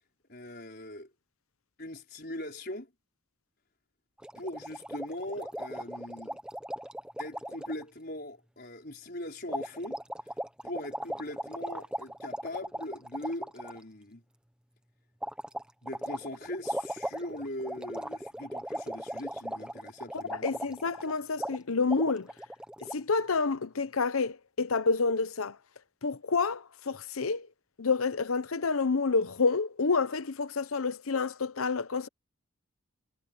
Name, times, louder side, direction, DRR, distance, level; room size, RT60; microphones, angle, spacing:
voice 1, 0.3-1.1 1.8-2.9 4.3-6.4 7.2-10.4 10.6-14.2 15.8-20.6, left 1 dB, 50° left, 5.1 m, -40 dB
sound 1, 4.2-7.8 9.5-13.8 15.2-21.1 21.4-21.6 21.9-22.9, right 1 dB, 5° right, 1.1 m, -38 dB
voice 2, 20.3-22.3 22.9-25.6 26.0-27.5 27.8-32.1, left 4 dB, 90° left, 0.8 m, -29 dB
head